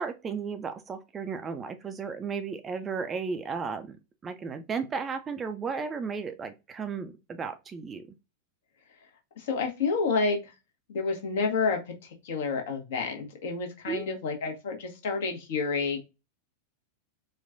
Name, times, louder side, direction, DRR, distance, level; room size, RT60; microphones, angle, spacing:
voice 1, 0.0-4.0 4.2-8.1 13.9-14.1, right 5 dB, 20° right, 0.4 m, -34 dB
voice 2, 9.4-10.5 10.9-16.0, left 4 dB, 55° left, 1.0 m, -29 dB
4.3 x 2.3 x 2.5 m
figure-of-eight pair, 90°, 0 cm